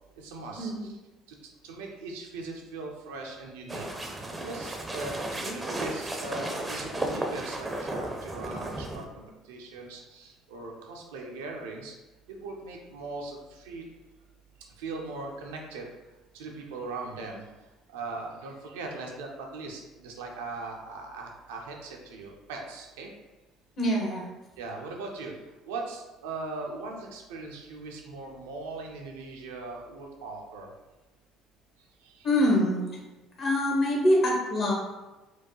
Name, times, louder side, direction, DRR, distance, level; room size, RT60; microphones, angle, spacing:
voice 1, 0.2-1.0 1.6-3.9 4.4-11.9 12.3-13.8 14.8-15.9 16.3-17.4 17.9-23.1 24.6-25.3 25.6-30.7 32.0-32.3, right 3 dB, 70° right, 1 dB, 0.5 m, -39 dB
sound 1, 3.7-9.0, right 1 dB, 15° right, 0.6 m, -34 dB
voice 2, 23.8-24.3 32.2-33.0 33.4-34.7, left 1 dB, 45° left, -2 dB, 1.2 m, -24 dB
4.4 x 2.2 x 2.9 m, 1.1 s
figure-of-eight pair, 55°, 0 cm